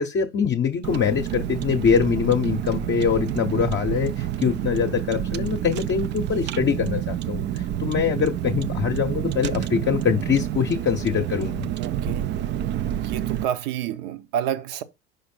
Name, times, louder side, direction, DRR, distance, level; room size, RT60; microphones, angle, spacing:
voice 1, 0.0-11.7, left 7 dB, 30° left, 0.8 m, -23 dB
Car, 0.8-13.5, right 11 dB, 30° right, 0.4 m, -28 dB
voice 2, 11.8-12.5 13.0-14.8, right 10 dB, 60° right, 0.9 m, -29 dB
5.2 x 5.0 x 4.3 m
hypercardioid pair, 75°, 36 cm